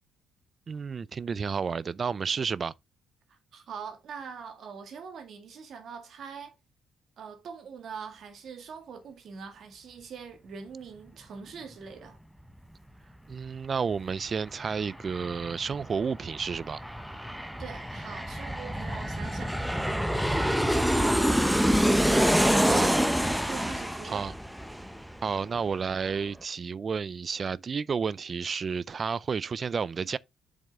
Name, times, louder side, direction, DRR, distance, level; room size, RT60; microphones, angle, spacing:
voice 1, 0.7-2.7 13.3-16.8 22.6-23.0 24.0-24.3 25.2-30.2, right 5 dB, 40° right, 0.4 m, -31 dB
voice 2, 3.3-6.5 7.2-12.2 17.6-19.6 20.6-21.6 21.9-22.8 23.4-24.3, right 6 dB, 60° right, 2.0 m, -43 dB
Aircraft, 13.9-14.0 14.3-25.6 25.9-26.0, equal, ahead, 0.7 m, -27 dB
7.2 x 5.4 x 3.6 m
cardioid pair, 100°, 0 cm